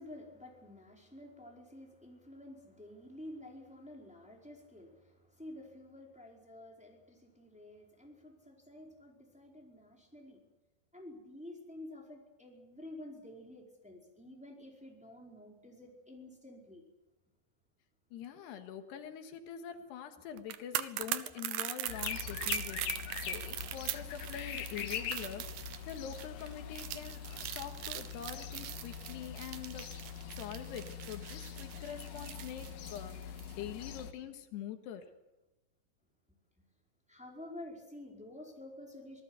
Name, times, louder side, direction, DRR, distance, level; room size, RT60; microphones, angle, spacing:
voice 1, 0.0-10.4 10.9-16.8 37.1-39.2, left 1 dB, ahead, 0 dB, 4.2 m, -50 dB
voice 2, 18.1-30.0 30.3-35.1, left 9 dB, 85° left, 7 dB, 3.7 m, -45 dB
sound 1, 20.4-33.5 33.8-34.0, right 13 dB, 70° right, 2.2 m, -41 dB
sound 2, 21.9-34.1, left 8 dB, 70° left, 3.1 m, -43 dB
26.5 x 19.0 x 8.2 m, 0.99 s
omnidirectional pair, 4.7 m